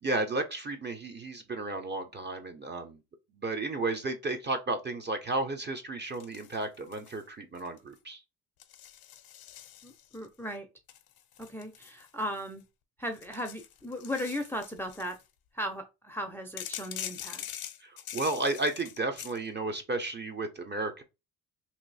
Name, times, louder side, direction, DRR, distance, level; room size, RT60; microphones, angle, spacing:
voice 1, 0.0-3.0 3.3-8.2 17.8-21.0, right 2 dB, 25° right, 0.9 m, -33 dB
sound 1, 6.1-7.2 7.5-8.0 8.6-10.2 10.9-12.6 13.1-15.2 16.6-19.4, left 11 dB, 60° left, 0.7 m, -44 dB
voice 2, 9.8-10.7 11.5-12.6 13.0-15.2 15.5-17.4, equal, 5° left, 0.7 m, -36 dB
2.9 x 2.7 x 4.1 m
cardioid pair, 85°, 40 cm